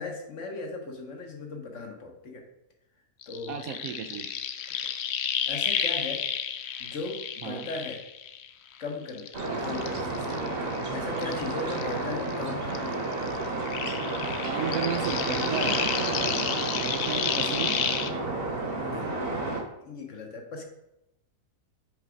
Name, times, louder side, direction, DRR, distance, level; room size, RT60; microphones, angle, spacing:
voice 1, 0.0-2.5 3.3-3.6 4.8-4.9 5.2-6.3 6.8-8.0 8.8-13.0 18.8-19.2 19.8-20.6, left 3 dB, 55° left, 3 dB, 1.2 m, -38 dB
sound 1, 3.2-8.7 9.1-12.4 12.7-18.1, left 8 dB, 80° left, 0.6 m, -32 dB
voice 2, 3.5-4.3 7.4-7.7 9.5-9.6 14.4-17.8, right 8 dB, 70° right, 6 dB, 0.9 m, -35 dB
sound 2, 9.3-19.6, right 2 dB, 40° right, 1.3 m, -31 dB
6.8 x 4.0 x 4.9 m, 0.87 s
omnidirectional pair, 1.7 m